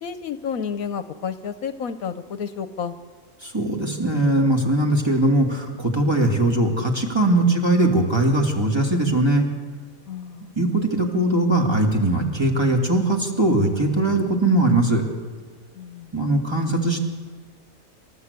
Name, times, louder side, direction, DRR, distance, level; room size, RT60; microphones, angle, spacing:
voice 1, 0.0-2.9 10.1-10.5 15.7-16.1, left 6 dB, 70° left, 11 dB, 1.2 m, -31 dB
voice 2, 3.4-9.5 10.4-15.0 16.1-17.0, right 1 dB, 15° right, 1 dB, 2.4 m, -20 dB
27.0 x 13.0 x 8.2 m, 1.5 s
omnidirectional pair, 1.6 m